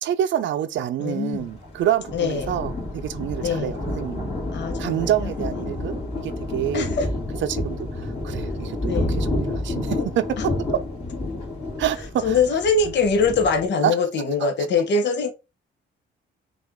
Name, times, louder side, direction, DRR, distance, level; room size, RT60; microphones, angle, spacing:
voice 1, 0.0-4.3 4.8-6.9 7.5-10.5 11.8-12.4 13.8-13.9, right 11 dB, 70° right, 0.5 m, -27 dB
voice 2, 1.0-1.5 2.1-2.5 3.4-3.7 4.5-5.5 6.7-7.1 8.8-9.1 12.2-15.3, left 4 dB, 65° left, 1.0 m, -23 dB
Thunder, 1.3-13.7, left 2 dB, 30° left, 2.4 m, -30 dB
5.9 x 2.5 x 3.6 m
cardioid pair, 90°, 20 cm